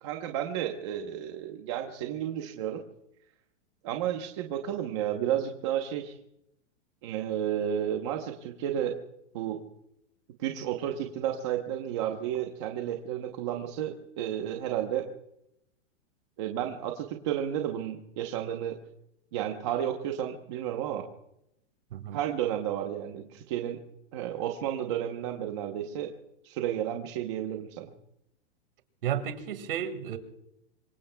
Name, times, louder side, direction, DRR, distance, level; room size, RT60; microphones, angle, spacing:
voice 1, 0.0-2.8 3.8-6.2 7.0-8.9 9.3-9.6 10.4-15.1 16.4-18.8 19.3-21.1 22.1-23.8 24.1-26.1 26.4-27.9, right 10 dB, 25° right, 0.9 m, -32 dB
voice 2, 29.0-30.2, right 9 dB, 50° right, 2.0 m, -32 dB
26.0 x 23.5 x 2.3 m
supercardioid pair, 180°, 36 cm